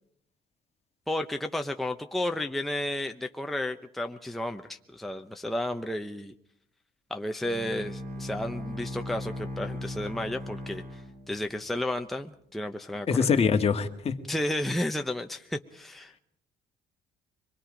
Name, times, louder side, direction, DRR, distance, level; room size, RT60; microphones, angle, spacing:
voice 1, 1.1-6.3 7.1-11.0 11.3-13.3 14.3-16.2, left 1 dB, ahead, 5 dB, 0.8 m, -32 dB
Bowed string instrument, 7.4-11.8, equal, 55° right, 3.2 m, -38 dB
voice 2, 13.1-14.2, left 6 dB, 35° left, 6 dB, 1.9 m, -24 dB
25.0 x 21.0 x 5.2 m, 0.72 s
cardioid pair, 110°, 17 cm